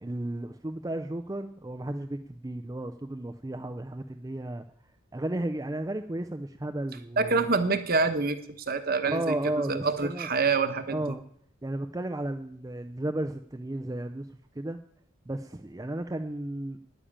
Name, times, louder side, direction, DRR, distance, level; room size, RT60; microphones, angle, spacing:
voice 1, 0.0-4.6 5.1-7.4 9.0-10.3 10.9-11.2 11.6-14.3 14.6-14.8 15.3-16.8, right 1 dB, 15° right, 7 dB, 0.4 m, -33 dB
voice 2, 7.2-8.4 8.7-9.3 9.7-11.0, right 4 dB, 45° right, 9 dB, 1.2 m, -26 dB
10.0 x 10.0 x 8.7 m, 0.68 s
head